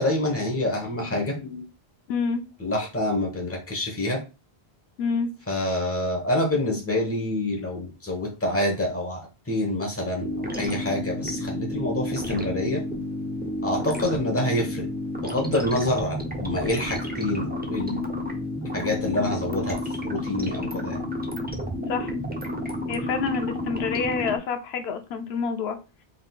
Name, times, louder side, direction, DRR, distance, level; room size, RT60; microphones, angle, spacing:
voice 1, 0.0-1.6 2.6-4.2 5.5-12.8 13.6-14.9 15.2-18.1 18.7-19.8 20.0-21.0, left 1 dB, 15° left, 0 dB, 1.0 m, -27 dB
voice 2, 2.1-2.4 5.0-5.3 21.9-22.1 22.9-25.8, left 5 dB, 85° left, 8 dB, 0.8 m, -27 dB
sound 1, 10.2-24.4, left 1 dB, 10° right, 0.5 m, -31 dB
3.8 x 3.6 x 2.4 m, 0.30 s
omnidirectional pair, 1.0 m